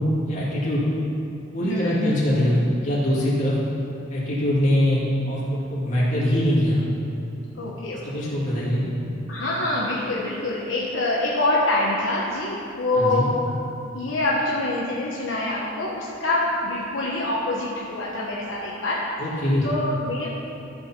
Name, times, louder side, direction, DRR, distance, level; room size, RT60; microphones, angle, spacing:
voice 1, 0.2-0.8 1.5-3.6 4.1-5.4 5.7-6.8 8.0-8.8 13.0-13.2 19.2-19.6, left 1 dB, 40° left, -7 dB, 2.6 m, -22 dB
voice 2, 1.6-2.2 7.5-8.2 9.3-13.5 13.9-19.0 19.3-20.3, left 2 dB, 65° left, -5 dB, 1.1 m, -25 dB
14.0 x 4.8 x 5.8 m, 2.7 s
head